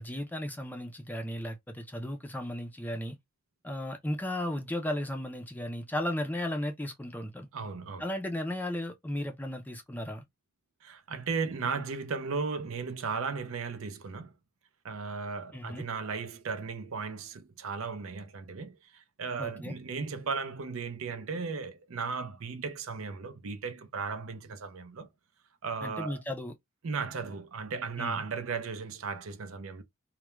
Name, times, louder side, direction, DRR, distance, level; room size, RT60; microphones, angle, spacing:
voice 1, 0.0-3.2 3.6-7.5 8.0-10.2 15.5-15.8 19.4-19.7 25.8-26.5 28.0-28.2, left 1 dB, 10° left, 0.4 m, -35 dB
voice 2, 7.5-8.0 10.8-14.3 14.8-25.1 25.6-26.2 26.8-29.8, right 5 dB, 70° right, 0.5 m, -36 dB
2.2 x 2.1 x 2.9 m
head